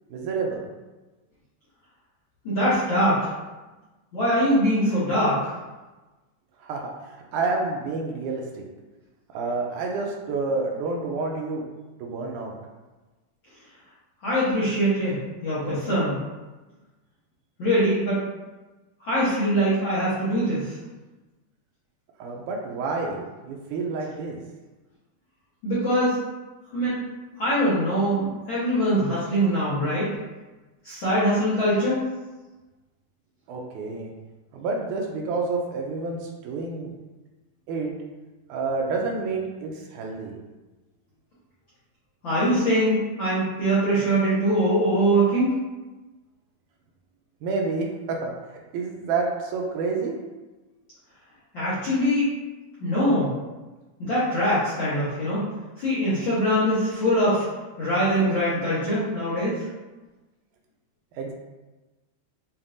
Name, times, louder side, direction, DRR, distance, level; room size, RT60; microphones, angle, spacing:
voice 1, 0.1-0.6 6.6-8.6 9.3-11.6 12.0-12.5 22.2-24.4 33.5-34.1 34.5-36.9 37.7-37.9 38.5-40.3 47.4-48.3 48.7-50.2 61.2-61.3, right 3 dB, 80° right, 0 dB, 1.9 m, -29 dB
voice 2, 2.4-3.3 4.1-5.5 14.2-16.2 17.6-18.2 19.0-20.8 25.6-26.2 26.7-27.0 27.4-30.1 30.8-32.0 42.2-45.6 51.5-52.4 52.8-53.3 54.0-55.5 55.8-57.5 57.8-59.6, equal, 60° left, -13 dB, 1.2 m, -23 dB
7.0 x 2.6 x 2.5 m, 1.2 s
omnidirectional pair, 3.7 m